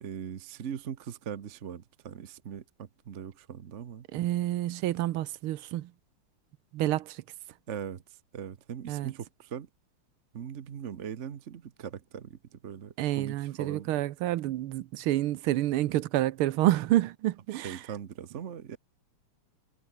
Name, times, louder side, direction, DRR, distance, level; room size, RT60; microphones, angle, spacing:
voice 1, 0.0-4.1 7.7-9.7 10.3-13.9 17.5-18.8, right 8 dB, 50° right, 0.9 m, -40 dB
voice 2, 4.1-5.9 6.7-7.2 8.9-9.1 13.0-17.8, right 14 dB, 80° right, 1.6 m, -28 dB
omnidirectional pair, 2.4 m